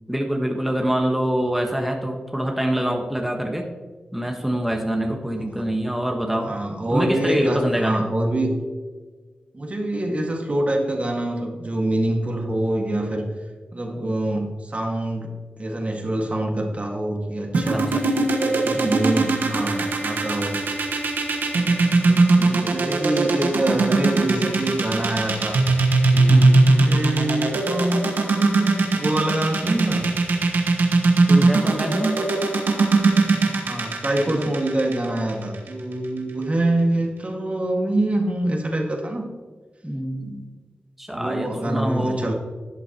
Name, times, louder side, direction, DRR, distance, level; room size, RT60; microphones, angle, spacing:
voice 1, 0.1-3.6 4.1-6.5 6.9-8.0 17.7-18.3 18.7-19.0 22.1-22.8 26.3-26.5 31.3-32.2 34.3-34.5 39.8-40.5 41.0-42.3, right 1 dB, 5° right, 1 dB, 1.3 m, -25 dB
voice 2, 5.4-5.7 6.4-8.6 9.5-13.3 13.7-17.9 18.4-20.6 21.6-21.8 22.7-25.6 26.1-30.1 33.6-39.3 41.1-42.3, right 1 dB, 45° right, 1 dB, 1.9 m, -25 dB
sound 1, 17.5-35.7, right 3 dB, 90° right, 1.3 m, -19 dB
12.0 x 8.0 x 3.0 m, 1.5 s
cardioid pair, 50°, 3 cm